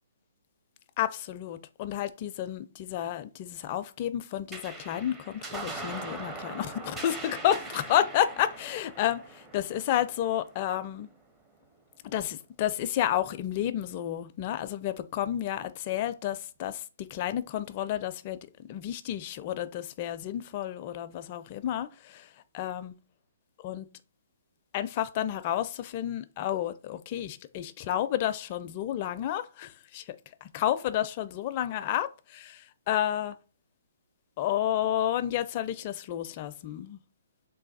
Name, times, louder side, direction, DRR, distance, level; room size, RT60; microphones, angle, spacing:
voice 1, 1.0-11.1 12.0-22.3 22.5-22.9 23.6-23.9 24.7-33.4 34.4-37.0, left 11 dB, 40° left, 0.4 m, -31 dB
sound 1, 4.5-11.3, right 3 dB, 15° right, 0.6 m, -41 dB
3.2 x 2.2 x 4.0 m
hypercardioid pair, 140°, 0 cm